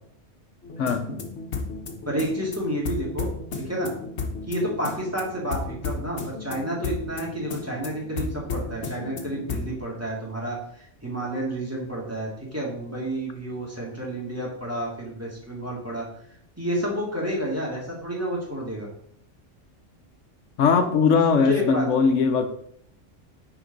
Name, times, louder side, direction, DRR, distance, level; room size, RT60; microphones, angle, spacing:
sound 1, 0.6-9.8, left 4 dB, 65° left, 1.3 m, -34 dB
voice 1, 2.1-3.3 3.6-3.9 4.4-16.1 16.6-18.9 21.4-21.9, right 1 dB, 10° right, -4 dB, 1.9 m, -30 dB
voice 2, 20.6-22.5, left 5 dB, 85° left, 7 dB, 1.1 m, -20 dB
9.4 x 3.8 x 3.9 m, 0.66 s
omnidirectional pair, 1.3 m